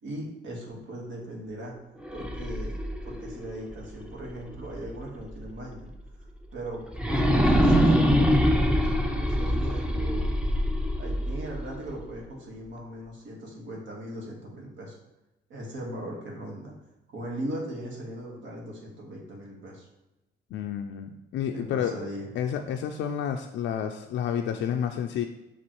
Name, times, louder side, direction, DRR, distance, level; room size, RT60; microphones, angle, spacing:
voice 1, 0.0-1.8 2.1-5.9 6.2-10.3 11.0-15.0 15.5-16.7 17.1-19.9 21.5-22.3, right 1 dB, 70° right, -1 dB, 1.5 m, -39 dB
sound 1, 2.0-5.0 5.4-5.5 6.9-12.0, equal, 5° right, 0.5 m, -24 dB
voice 2, 20.5-21.9 22.4-25.3, left 8 dB, 70° left, 4 dB, 0.4 m, -30 dB
7.1 x 2.4 x 3.1 m, 0.99 s
cardioid pair, 90°, 20 cm